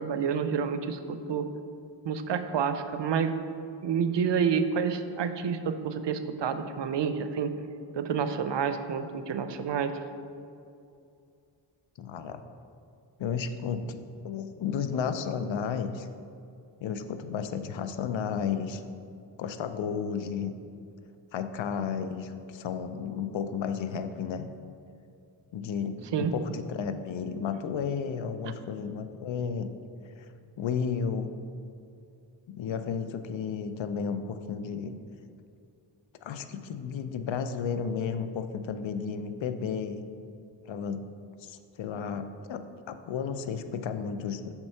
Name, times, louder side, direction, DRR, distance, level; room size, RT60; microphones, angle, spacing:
voice 1, 0.0-1.5 2.0-3.3 3.8-7.5 8.0-9.9 26.1-26.3 28.4-28.5, right 6 dB, 65° right, 10 dB, 0.6 m, -29 dB
voice 2, 12.0-12.4 13.2-14.0 14.2-16.1 16.8-18.8 19.4-20.5 21.3-24.5 25.5-29.7 30.0-30.3 30.6-31.3 32.5-35.0 36.2-40.0 40.7-41.0 41.4-44.5, left 6 dB, 80° left, 9 dB, 0.6 m, -33 dB
5.9 x 4.3 x 5.5 m, 2.5 s
cardioid pair, 45°, 45 cm